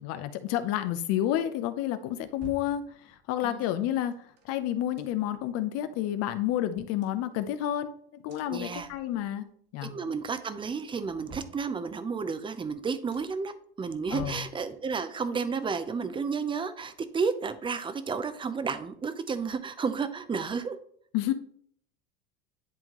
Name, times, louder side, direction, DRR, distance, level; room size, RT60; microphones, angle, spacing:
voice 1, 0.0-4.2 4.4-9.4 9.7-9.9 14.1-14.4 21.1-21.3, left 12 dB, 55° left, 10 dB, 0.8 m, -30 dB
sound 1, 1.7-3.4 4.1-5.5 5.9-6.0 6.2-7.9 8.3-9.5 9.8-10.3 10.7-12.2 12.7-12.8 13.1-13.6 14.0-15.2 15.5-17.3 17.6-17.7, right 4 dB, 55° right, 1.8 m, -52 dB
voice 2, 3.4-3.8 8.5-8.9 9.8-20.8, right 5 dB, 15° right, 11 dB, 0.6 m, -32 dB
10.5 x 3.6 x 3.0 m, 0.63 s
hypercardioid pair, 90°, 30 cm